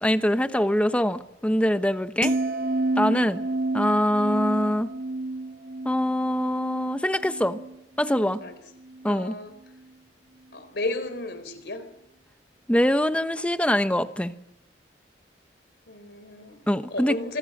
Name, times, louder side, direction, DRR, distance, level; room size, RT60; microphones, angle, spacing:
voice 1, 0.0-2.3 3.0-3.4 3.7-4.9 5.8-7.6 8.0-8.4 9.0-9.3 12.7-14.3 16.7-17.2, equal, 5° left, 10 dB, 0.9 m, -23 dB
sound 1, 2.2-8.5 8.8-9.2, right 2 dB, 50° right, 1.5 m, -30 dB
voice 2, 9.1-9.5 10.5-11.8 15.9-16.6 16.9-17.4, left 2 dB, 65° left, 11 dB, 4.0 m, -33 dB
26.0 x 19.5 x 7.8 m, 0.82 s
head